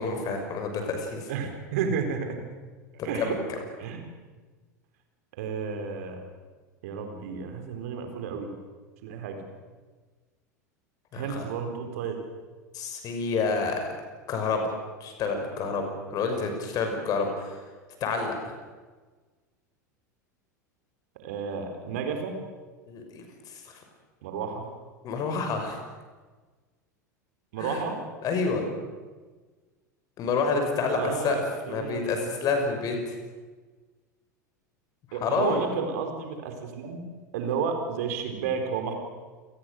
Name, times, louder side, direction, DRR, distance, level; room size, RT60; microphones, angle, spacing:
voice 1, 0.0-1.3 3.0-3.4 11.1-11.4 12.7-13.8 14.3-14.7 15.0-17.6 18.0-18.6 22.9-23.8 25.0-25.8 27.6-27.8 28.2-28.6 30.2-31.4 31.7-33.0 35.1-35.6, left 4 dB, 40° left, 5 dB, 6.0 m, -28 dB
voice 2, 1.3-2.4 3.0-3.4 3.8-4.1 5.4-6.2 6.8-8.5 9.0-9.4 11.1-12.2 21.2-22.4 24.2-24.7 27.5-28.0 30.9-32.0 35.1-37.0 37.3-38.9, right 6 dB, 60° right, 5 dB, 4.2 m, -32 dB
29.0 x 19.5 x 6.6 m, 1.4 s
figure-of-eight pair, 80°, 10 cm